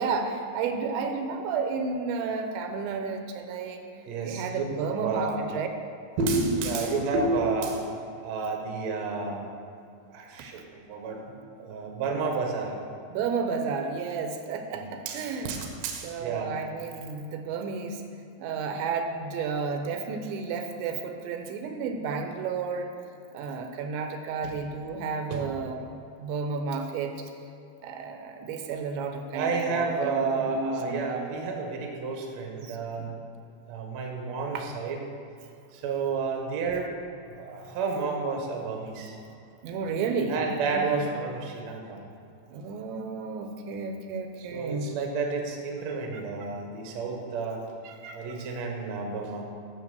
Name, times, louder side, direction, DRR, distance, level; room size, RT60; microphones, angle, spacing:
voice 1, 0.0-3.8 4.2-5.7 13.1-15.6 16.0-18.0 18.4-22.9 23.3-25.8 26.2-27.1 27.8-31.1 32.6-33.1 34.5-34.7 37.6-37.7 39.6-41.0 42.5-44.9 46.1-46.2 47.8-48.4, right 5 dB, 85° right, 5 dB, 3.1 m, -32 dB
voice 2, 4.1-4.6 5.0-5.4 6.2-7.9 8.2-9.4 10.1-12.8 14.7-16.5 24.4-24.6 25.3-25.5 29.3-33.1 33.7-35.0 35.7-36.9 37.3-39.2 40.3-42.0 44.4-47.6 48.1-49.4, right 4 dB, 65° right, 1 dB, 1.8 m, -30 dB
12.0 x 6.4 x 6.9 m, 2.5 s
omnidirectional pair, 5.2 m